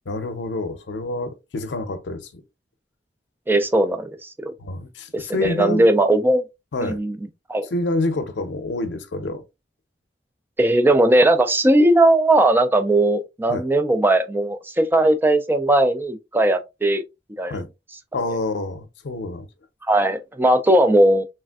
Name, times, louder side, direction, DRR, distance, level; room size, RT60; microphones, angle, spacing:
voice 1, 0.1-2.4 4.6-5.9 6.7-7.0 7.7-9.4 13.5-13.6 17.5-17.7 18.1-19.5, left 2 dB, 85° left, 0.6 m, -27 dB
voice 2, 3.5-4.5 5.1-6.4 6.8-7.2 7.5-7.7 10.6-17.0 17.4-17.6 19.9-21.3, right 1 dB, 10° right, 0.4 m, -18 dB
3.2 x 2.5 x 2.3 m
head